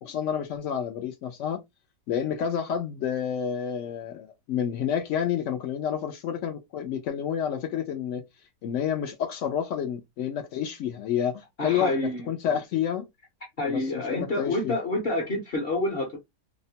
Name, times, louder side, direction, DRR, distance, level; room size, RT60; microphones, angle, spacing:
voice 1, 0.0-1.6 2.1-8.2 8.6-13.1 13.7-14.7, left 8 dB, 90° left, 0.6 m, -29 dB
voice 2, 11.6-12.3 13.6-16.2, left 2 dB, 50° left, 0.7 m, -28 dB
2.8 x 2.1 x 2.7 m
omnidirectional pair, 1.8 m